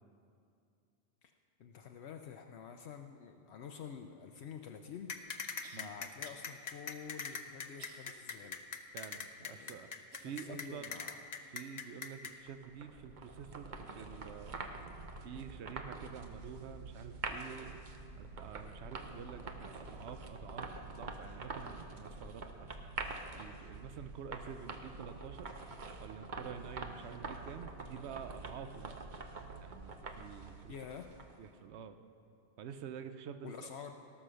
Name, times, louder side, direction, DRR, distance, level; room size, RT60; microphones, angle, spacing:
voice 1, 1.6-5.1 5.7-8.6 9.4-9.8 10.2-11.3 30.7-31.1 33.4-33.9, left 7 dB, 75° left, 4 dB, 0.9 m, -48 dB
sound 1, 4.6-4.7 5.6-5.9 6.2-6.5 6.9-8.5 9.0-9.1 10.1-10.9 11.4-11.5 12.3-12.4, right 5 dB, 70° right, 1.2 m, -59 dB
sound 2, 5.1-12.3, left 6 dB, 45° left, 0.7 m, -41 dB
voice 2, 8.9-9.9 10.2-11.0 11.5-14.6 15.2-17.8 18.2-22.7 23.3-25.5 26.0-28.9 29.6-30.7 31.4-32.0 32.6-33.7, right 7 dB, 85° right, 9 dB, 0.9 m, -48 dB
sound 3, 12.5-31.5, right 3 dB, 50° right, 0.9 m, -46 dB
18.5 x 6.2 x 6.3 m, 2.5 s
omnidirectional pair, 1.1 m